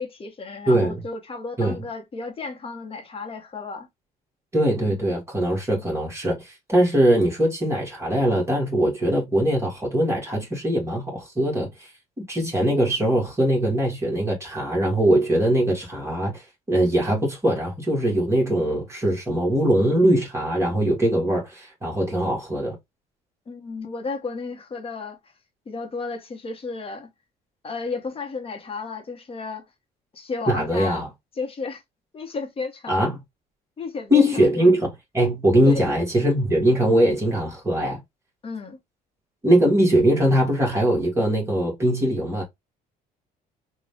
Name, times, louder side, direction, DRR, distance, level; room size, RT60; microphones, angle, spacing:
voice 1, 0.0-3.9 23.5-25.2 25.7-27.1 27.6-29.6 30.1-31.0 31.4-31.8 32.1-32.9 33.8-34.7 35.6-35.9 38.4-38.8, left 4 dB, 35° left, 1.4 m, -33 dB
voice 2, 4.5-11.9 12.3-22.8 30.5-31.1 32.9-33.2 34.1-38.0 39.4-42.4, right 1 dB, 15° right, 2.0 m, -21 dB
3.8 x 2.7 x 3.5 m
cardioid pair, 110°, 17 cm